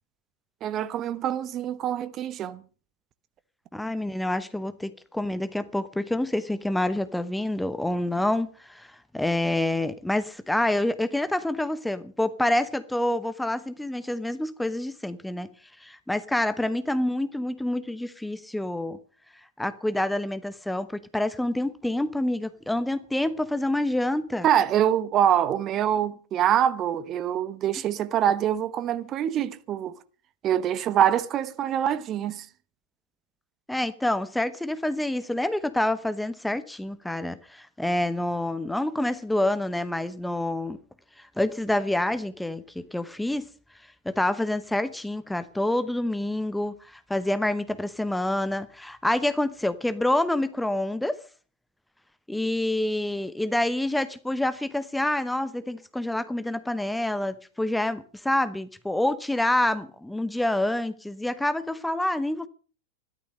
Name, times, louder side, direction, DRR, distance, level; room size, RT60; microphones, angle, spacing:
voice 1, 0.6-2.6 24.4-29.9 30.4-32.5, right 10 dB, 30° right, 1.0 m, -25 dB
voice 2, 3.7-15.5 15.8-19.0 19.6-24.5 33.7-40.8 41.2-43.4 44.0-51.2 52.3-62.5, left 1 dB, 5° left, 0.8 m, -27 dB
13.5 x 12.5 x 6.5 m
figure-of-eight pair, 90°, 0 cm